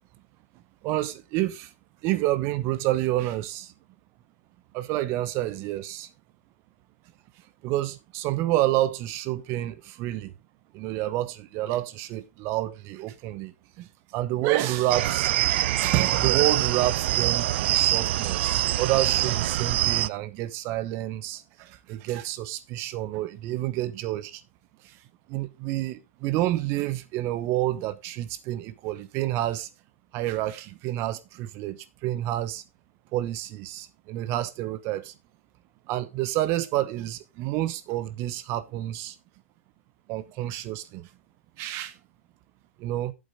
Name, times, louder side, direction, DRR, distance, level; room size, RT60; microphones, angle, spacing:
voice 1, 0.8-1.7 2.0-3.7 4.7-6.1 7.6-10.3 10.7-15.3 15.8-24.4 24.8-25.0 25.3-29.7 30.1-32.6 33.1-35.1 35.9-39.2 40.1-41.1 41.6-42.0 42.8-43.1, right 15 dB, 35° right, 1.0 m, -29 dB
sound 1, 14.9-20.1, right 14 dB, 50° right, 0.4 m, -24 dB
8.4 x 7.7 x 3.8 m
hypercardioid pair, 125°, 8 cm